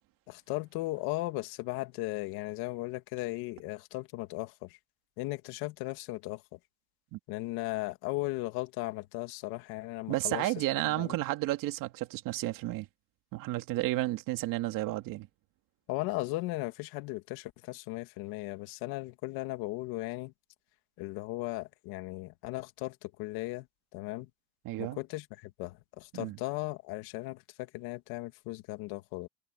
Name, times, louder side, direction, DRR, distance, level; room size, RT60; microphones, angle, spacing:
voice 1, 0.3-4.8 5.2-6.6 7.3-10.5 10.9-11.2 15.9-20.3 21.0-23.7 23.9-24.3 24.8-29.3, left 20 dB, 65° left, 2.1 m, -37 dB
voice 2, 10.1-12.9 13.3-15.3 24.6-25.0 26.1-26.4, right 17 dB, 55° right, 2.4 m, -32 dB
cardioid pair, 150°, 40 cm